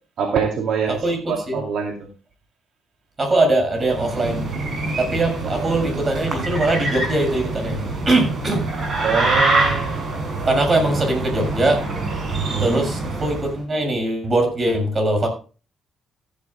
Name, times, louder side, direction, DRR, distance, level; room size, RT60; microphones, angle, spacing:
voice 1, 0.2-1.0 1.3-1.9 5.5-5.8 9.0-10.0 12.5-12.8, right 6 dB, 70° right, 2 dB, 2.6 m, -24 dB
voice 2, 0.9-1.6 3.2-4.5 5.0-8.7 10.5-11.8 12.6-15.3, right 2 dB, 35° right, 5 dB, 6.7 m, -21 dB
sound 1, 3.8-13.5, right 2 dB, 50° right, 6.6 m, -25 dB
16.0 x 11.5 x 2.3 m, 0.34 s
cardioid pair, 90°, 0 cm